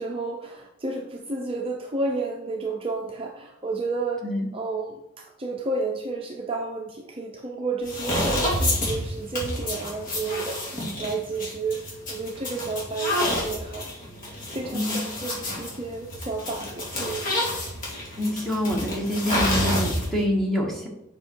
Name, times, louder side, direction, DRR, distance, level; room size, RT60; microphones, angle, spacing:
voice 1, 0.0-4.2 4.5-11.8 12.1-13.9 14.2-17.4, right 3 dB, 25° right, 0 dB, 0.6 m, -31 dB
sound 1, 7.8-20.2, left 1 dB, 40° left, 2.3 m, -29 dB
voice 2, 14.7-15.0 18.2-20.9, left 1 dB, ahead, -1 dB, 1.3 m, -26 dB
7.6 x 5.4 x 4.6 m, 0.90 s
head